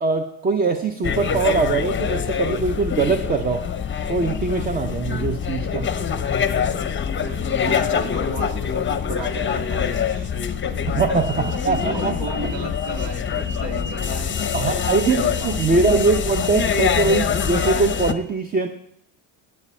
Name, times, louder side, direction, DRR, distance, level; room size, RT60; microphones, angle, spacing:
voice 1, 0.0-3.6 4.1-5.9 10.9-12.1 12.4-12.5 14.5-18.7, right 4 dB, 20° right, 7 dB, 0.5 m, -22 dB
sound 1, 1.0-18.1, left 7 dB, 25° left, 0.7 m, -24 dB
voice 2, 7.1-10.3 10.7-14.7 15.1-15.7, right 3 dB, 65° right, 5 dB, 2.0 m, -35 dB
17.0 x 8.4 x 4.3 m, 0.76 s
cardioid pair, 135°, 49 cm